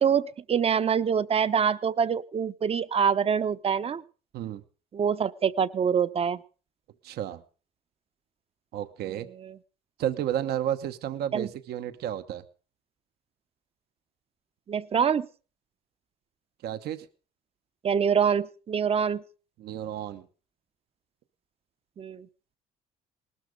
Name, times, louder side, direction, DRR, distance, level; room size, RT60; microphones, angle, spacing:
voice 1, 0.0-4.0 4.9-6.4 9.4-9.6 11.3-11.5 14.7-15.3 17.8-19.2 22.0-22.3, right 7 dB, 35° right, 15 dB, 0.8 m, -25 dB
voice 2, 7.0-7.4 8.7-9.3 10.0-12.4 16.6-17.1 19.6-20.3, right 11 dB, 70° right, 10 dB, 1.1 m, -32 dB
19.5 x 13.0 x 5.2 m, 0.38 s
cardioid pair, 110°, 17 cm